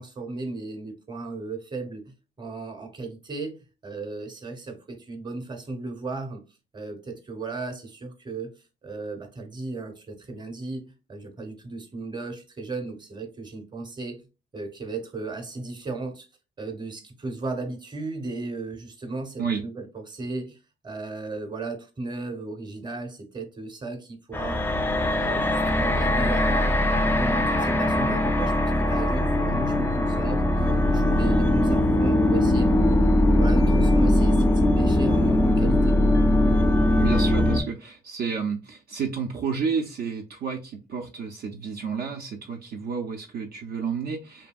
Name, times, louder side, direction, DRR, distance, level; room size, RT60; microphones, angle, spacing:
voice 1, 0.0-6.4 6.7-10.8 11.1-14.2 14.5-16.3 16.6-24.7 25.0-30.4 30.9-33.0 33.4-35.9, right 3 dB, 20° right, 0.7 m, -35 dB
sound 1, 24.3-37.6, left 1 dB, 10° left, 0.3 m, -21 dB
voice 2, 37.0-44.5, right 6 dB, 55° right, 0.4 m, -31 dB
2.7 x 2.6 x 2.2 m
cardioid pair, 90°, 20 cm